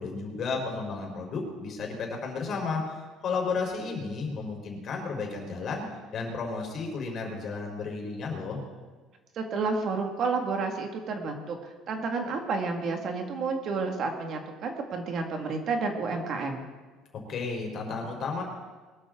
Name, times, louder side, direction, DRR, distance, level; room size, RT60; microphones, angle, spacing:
voice 1, 0.0-3.0 3.2-5.8 6.1-8.6 17.1-18.4, left 4 dB, 45° left, 1 dB, 4.2 m, -33 dB
voice 2, 9.3-16.6, right 4 dB, 50° right, 3 dB, 2.2 m, -30 dB
22.0 x 13.0 x 3.9 m, 1.4 s
cardioid pair, 130°, 0 cm